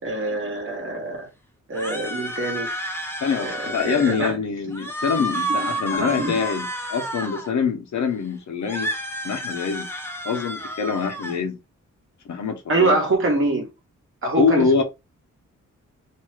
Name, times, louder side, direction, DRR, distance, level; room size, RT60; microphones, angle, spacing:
voice 1, 0.0-1.3 1.7-2.7 3.4-4.4 5.2-5.3 5.9-6.4 12.7-13.7 14.2-14.8, right 2 dB, 40° right, 1.2 m, -24 dB
sound 1, 1.7-4.3 4.7-7.5 8.6-11.4, equal, 10° left, 0.4 m, -30 dB
voice 2, 3.2-8.9 9.2-9.9 10.2-11.6 12.2-13.0 14.2-14.8, left 5 dB, 65° left, 0.8 m, -24 dB
2.6 x 2.3 x 3.2 m
wide cardioid pair, 165°, 31 cm